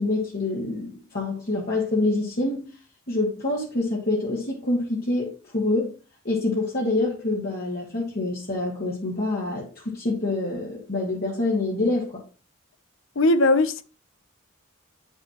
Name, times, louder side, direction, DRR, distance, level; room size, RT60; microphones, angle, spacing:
voice 1, 0.0-2.7 3.1-5.9 6.2-12.2, left 2 dB, 50° left, 2.1 m, -26 dB
voice 2, 13.2-13.8, left 2 dB, 65° left, 0.8 m, -19 dB
9.0 x 6.7 x 3.0 m
head